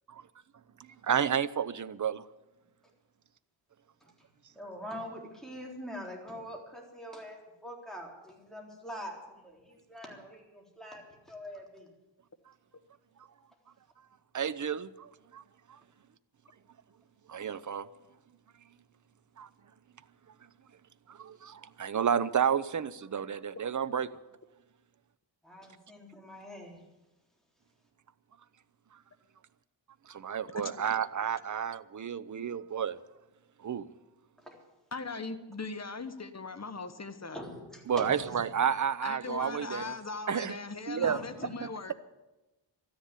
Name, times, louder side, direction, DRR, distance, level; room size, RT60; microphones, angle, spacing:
voice 1, 1.0-2.2 14.3-15.4 17.3-17.9 19.4-19.5 21.1-24.1 30.1-33.0 33.6-33.9 37.9-39.9 40.3-40.6 40.9-41.2, right 8 dB, 40° right, 15 dB, 0.6 m, -31 dB
voice 2, 4.5-11.9 13.5-13.6 25.4-26.8 34.4-34.6 37.3-38.5 41.0-41.5, equal, ahead, -1 dB, 3.7 m, -44 dB
voice 3, 34.9-37.4 39.0-41.9, left 4 dB, 35° left, 9 dB, 1.2 m, -39 dB
13.0 x 10.5 x 9.7 m, 1.0 s
wide cardioid pair, 100°, 47 cm